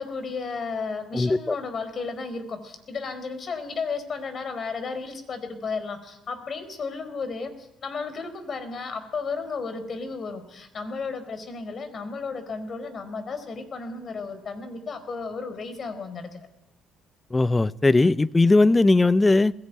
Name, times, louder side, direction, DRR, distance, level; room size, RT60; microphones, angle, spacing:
voice 1, 0.0-16.4, left 4 dB, 50° left, 9 dB, 4.7 m, -33 dB
voice 2, 1.1-1.6 17.3-19.5, left 2 dB, 20° left, 18 dB, 0.9 m, -19 dB
20.5 x 17.0 x 9.4 m, 0.88 s
hypercardioid pair, 60°, 0 cm